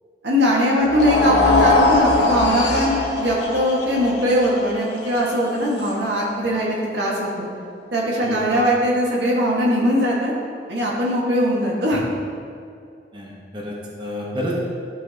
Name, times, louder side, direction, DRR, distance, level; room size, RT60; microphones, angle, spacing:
voice 1, 0.2-7.5 7.9-10.3 10.7-12.0, equal, 80° right, -4 dB, 1.7 m, -20 dB
sound 1, 0.8-7.1, left 2 dB, 70° left, 1.2 m, -22 dB
voice 2, 8.2-8.7 13.1-14.5, equal, 25° right, -4 dB, 1.1 m, -30 dB
11.5 x 5.7 x 2.9 m, 2.3 s
head